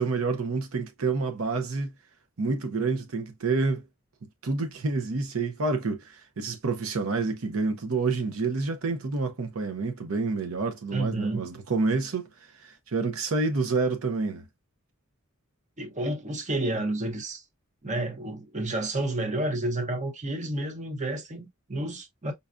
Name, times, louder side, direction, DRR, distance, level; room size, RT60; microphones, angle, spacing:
voice 1, 0.0-1.9 2.4-3.8 4.4-14.4, right 3 dB, 75° right, 0.7 m, -28 dB
voice 2, 10.9-11.5 15.8-17.4 17.8-22.3, right 1 dB, 35° right, 0.9 m, -30 dB
5.4 x 2.3 x 2.4 m
head